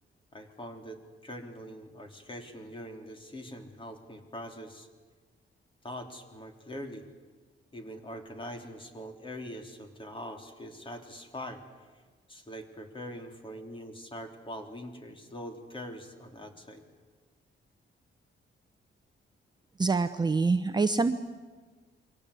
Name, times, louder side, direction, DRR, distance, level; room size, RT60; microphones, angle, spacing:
voice 1, 0.3-4.9 5.8-7.1 7.7-11.6 12.3-16.8, equal, 25° left, 5 dB, 3.2 m, -43 dB
voice 2, 19.8-21.1, right 4 dB, 20° right, 8 dB, 0.8 m, -25 dB
28.5 x 23.5 x 8.3 m, 1.4 s
wide cardioid pair, 145°, 21 cm